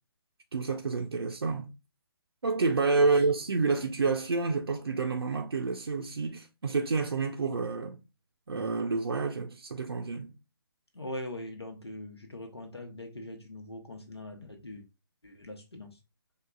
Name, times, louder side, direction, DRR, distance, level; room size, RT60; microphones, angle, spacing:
voice 1, 0.5-1.7 2.4-8.0 8.5-10.3, right 4 dB, 75° right, 0.5 m, -29 dB
voice 2, 10.9-14.8 15.2-16.0, left 1 dB, 90° left, 1.0 m, -42 dB
4.7 x 2.4 x 2.3 m
figure-of-eight pair, 135°, 13 cm